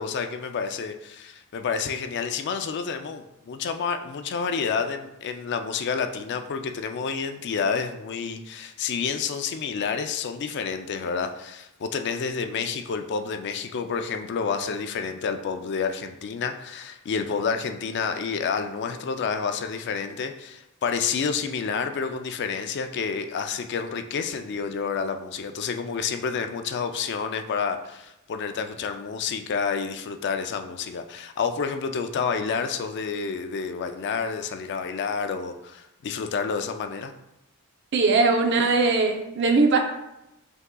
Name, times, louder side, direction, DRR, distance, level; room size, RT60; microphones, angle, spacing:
voice 1, 0.0-37.1, left 5 dB, 55° left, 7 dB, 0.4 m, -29 dB
voice 2, 37.9-39.8, right 3 dB, 55° right, 3 dB, 0.6 m, -20 dB
5.5 x 3.6 x 2.2 m, 0.89 s
head